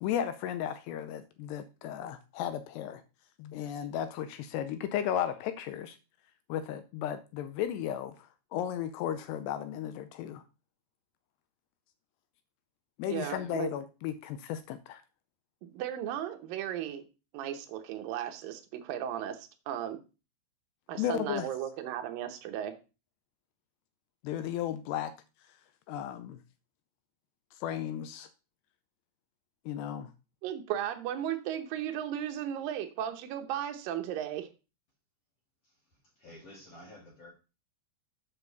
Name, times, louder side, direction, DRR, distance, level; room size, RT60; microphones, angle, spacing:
voice 1, 0.0-3.0 3.4-6.0 6.5-10.4 13.0-15.0 21.0-21.5 24.2-25.1 25.9-26.4 27.5-28.3 29.7-30.1, left 10 dB, 80° left, 2.6 m, -35 dB
voice 2, 13.1-13.7 15.6-17.1 17.3-20.0 20.9-22.8 30.4-34.5, right 10 dB, 75° right, 2.1 m, -35 dB
voice 3, 36.2-37.3, left 1 dB, 45° left, 2.2 m, -51 dB
7.8 x 6.9 x 4.0 m
omnidirectional pair, 5.1 m